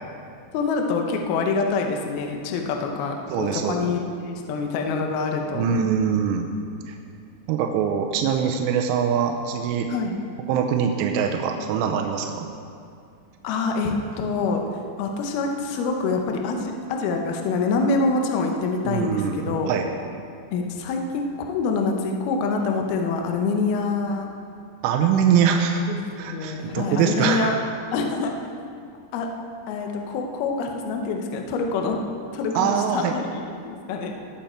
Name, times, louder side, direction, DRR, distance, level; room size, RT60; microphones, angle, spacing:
voice 1, 0.5-5.8 9.9-10.2 13.4-14.7 15.0-19.7 20.5-24.3 25.9-26.0 26.2-27.5 27.9-28.3 29.1-29.3 29.7-32.0 32.3-34.1, left 4 dB, 75° left, 3 dB, 2.3 m, -26 dB
voice 2, 3.3-3.9 5.5-6.5 6.9-7.0 7.5-9.9 10.5-12.5 18.9-19.9 24.8-25.8 26.2-27.5 32.6-33.1, right 7 dB, 90° right, 4 dB, 3.3 m, -23 dB
19.5 x 7.1 x 4.4 m, 2.4 s
omnidirectional pair, 5.5 m